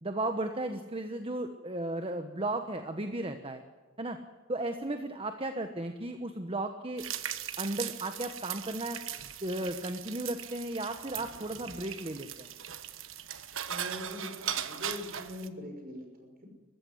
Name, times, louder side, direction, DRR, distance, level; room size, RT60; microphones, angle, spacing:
voice 1, 0.0-3.6 4.0-4.2 4.5-7.0 7.6-9.0 9.4-12.5, right 2 dB, 30° right, 7 dB, 1.2 m, -35 dB
sound 1, 7.0-15.5, right 10 dB, 75° right, 1.3 m, -39 dB
voice 2, 13.7-16.5, left 1 dB, 45° right, 3 dB, 6.0 m, -42 dB
22.0 x 15.0 x 9.7 m, 1.4 s
head